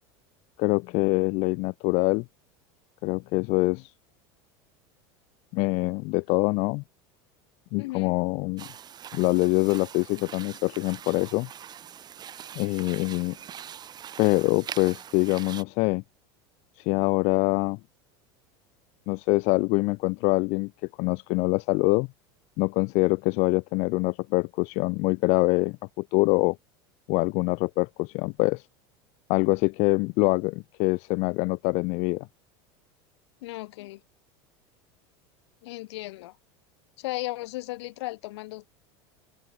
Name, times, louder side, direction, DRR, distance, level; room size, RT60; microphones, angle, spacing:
voice 1, 0.6-2.2 3.0-3.9 5.5-6.8 7.7-8.7 9.1-11.5 12.6-13.4 14.2-16.0 16.8-17.8 19.1-20.7 21.0-22.1 22.6-26.6 27.1-28.6 29.3-32.3, left 28 dB, 55° left, 0.4 m, -24 dB
voice 2, 7.8-8.2 33.4-34.0 35.6-36.4 37.0-38.7, left 19 dB, 80° left, 1.5 m, -36 dB
sound 1, 8.6-15.6, right 9 dB, 30° right, 0.9 m, -43 dB
open air
supercardioid pair, 115°, 14 cm